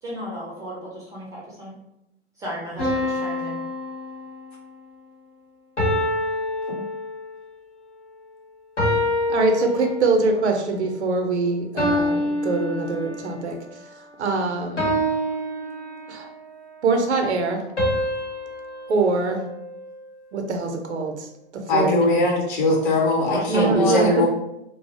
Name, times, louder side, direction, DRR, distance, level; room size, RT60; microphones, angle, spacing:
voice 1, 0.0-1.7 2.4-3.6 23.3-24.2, equal, 10° right, -6 dB, 0.3 m, -31 dB
sound 1, 2.8-4.7 5.8-7.4 8.8-10.3 11.8-13.4 14.8-16.4 17.8-20.1, left 1 dB, 85° left, 0.9 m, -26 dB
voice 2, 9.3-13.5 14.2-14.9 16.1-16.3 16.8-17.6 18.9-19.4 20.3-21.3 21.7-22.3 23.5-24.1, right 3 dB, 75° right, 4 dB, 0.5 m, -23 dB
voice 3, 21.7-24.3, left 2 dB, 45° left, -1 dB, 0.7 m, -20 dB
2.3 x 2.0 x 2.7 m, 0.84 s
figure-of-eight pair, 95°, 34 cm